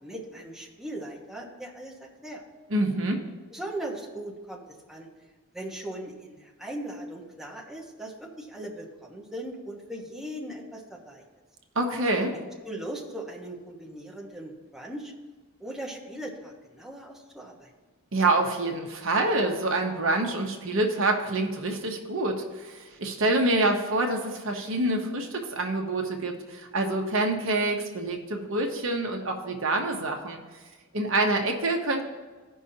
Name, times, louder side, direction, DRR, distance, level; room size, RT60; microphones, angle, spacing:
voice 1, 0.0-2.4 3.5-4.6 4.9-5.1 5.5-11.2 12.6-15.1 15.6-17.7, right 1 dB, ahead, -3 dB, 1.1 m, -39 dB
voice 2, 2.7-3.2 11.8-12.4 18.1-30.4 30.9-32.0, right 2 dB, 60° right, 2 dB, 0.9 m, -26 dB
16.0 x 5.5 x 2.8 m, 1.3 s
head